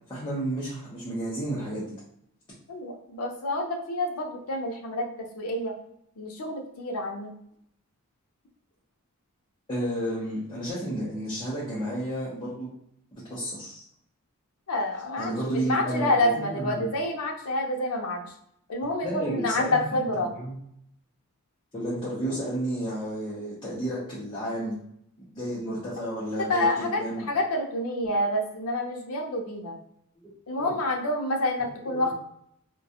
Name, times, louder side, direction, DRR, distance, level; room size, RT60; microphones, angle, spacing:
voice 1, 0.1-1.9 9.7-12.7 13.1-13.9 15.2-16.9 19.0-20.6 21.7-24.8 25.3-27.2 30.6-30.7 31.9-32.1, right 1 dB, 20° left, -8 dB, 0.6 m, -32 dB
voice 2, 2.7-5.1 5.3-5.7 6.2-7.3 14.7-18.2 18.7-20.3 26.5-27.0 27.3-29.7 30.5-32.1, left 1 dB, 80° left, 2 dB, 0.5 m, -28 dB
2.3 x 2.2 x 2.7 m, 0.73 s
head